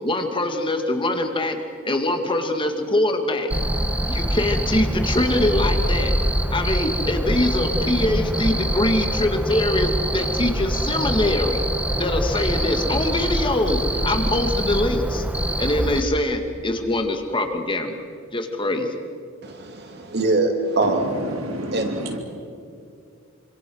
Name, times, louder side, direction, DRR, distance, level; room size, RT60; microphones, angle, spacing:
voice 1, 0.0-1.6 1.8-3.5 4.1-6.1 6.5-11.6 12.0-15.2 15.6-17.9 18.3-18.9, left 1 dB, 25° left, 5 dB, 2.2 m, -23 dB
Cricket, 3.5-16.0, right 1 dB, 5° right, 1.2 m, -24 dB
voice 2, 19.4-21.1 21.7-21.9, right 2 dB, 50° right, 4 dB, 3.1 m, -23 dB
voice 3, 20.8-22.2, right 1 dB, 70° right, 2 dB, 3.7 m, -30 dB
26.5 x 25.5 x 6.4 m, 2.3 s
head